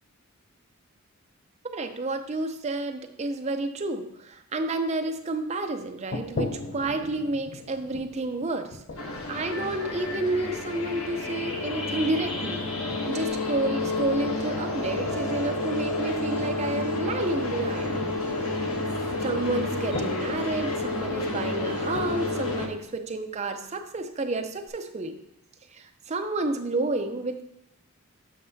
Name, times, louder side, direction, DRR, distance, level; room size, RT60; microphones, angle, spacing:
voice 1, 1.7-8.8 9.3-12.7 13.1-18.0 19.2-25.2 25.7-27.4, right 2 dB, 30° right, 6 dB, 0.5 m, -30 dB
sound 1, 6.1-11.0 12.2-12.8 13.3-13.6 14.2-16.0 16.4-23.9 24.4-24.7, left 2 dB, 50° left, 0.5 m, -41 dB
sound 2, 9.0-22.7, left 2 dB, 80° left, 0.9 m, -30 dB
7.5 x 5.4 x 2.7 m, 0.79 s
head